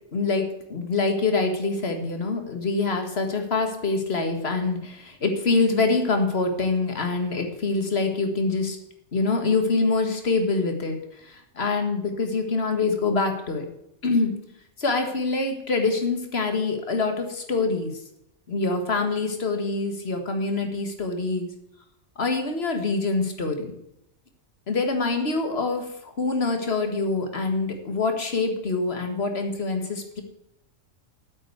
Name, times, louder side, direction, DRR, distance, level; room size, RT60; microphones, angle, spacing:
voice 1, 0.1-8.8 9.1-13.7 14.0-14.3 14.8-17.9 18.5-21.5 22.2-23.7 24.7-30.2, left 3 dB, 45° left, 5 dB, 1.9 m, -25 dB
8.9 x 8.2 x 8.1 m, 0.80 s
omnidirectional pair, 1.5 m